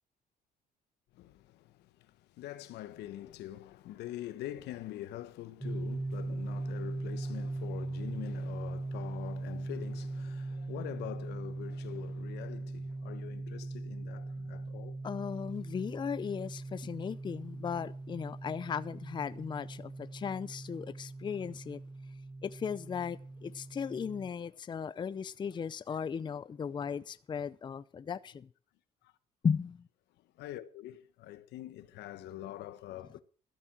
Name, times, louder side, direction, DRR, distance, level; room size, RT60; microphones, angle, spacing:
voice 1, 1.1-15.0 30.4-33.2, left 13 dB, 80° left, 1.2 m, -44 dB
sound 1, 5.6-24.3, right 2 dB, 5° right, 1.7 m, -40 dB
voice 2, 15.0-21.8 22.4-28.5 29.4-29.9, left 6 dB, 25° left, 0.5 m, -36 dB
13.5 x 8.6 x 7.5 m
cardioid pair, 110°, 17 cm